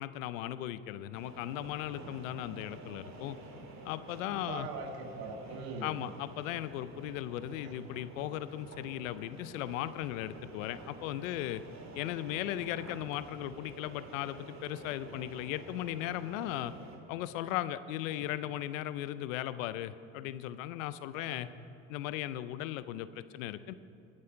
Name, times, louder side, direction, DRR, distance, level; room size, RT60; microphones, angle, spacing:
voice 1, 0.0-3.4 3.8-4.7 5.8-11.6 11.9-16.7 17.1-21.5 21.9-23.7, left 13 dB, 90° left, 15 dB, 0.6 m, -37 dB
sound 1, 1.1-17.0, right 2 dB, 45° right, 2.3 m, -50 dB
voice 2, 4.2-5.9 7.5-7.8 18.1-18.2 21.2-21.4, right 4 dB, 70° right, 4 dB, 1.7 m, -42 dB
20.5 x 7.6 x 4.6 m, 2.6 s
supercardioid pair, 80°, 39 cm